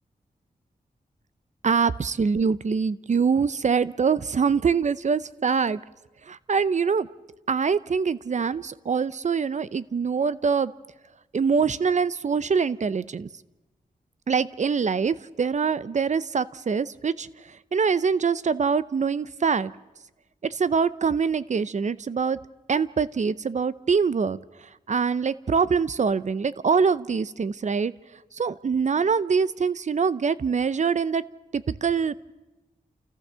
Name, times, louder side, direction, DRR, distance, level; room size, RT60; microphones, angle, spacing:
voice 1, 1.6-5.8 6.3-7.1 7.5-10.7 11.3-13.3 14.3-19.7 20.4-22.4 22.7-24.4 24.9-27.9 28.3-31.2 31.5-32.1, right 5 dB, 50° right, 17 dB, 0.7 m, -24 dB
29.0 x 14.5 x 6.9 m, 1.1 s
wide cardioid pair, 90°, 15 cm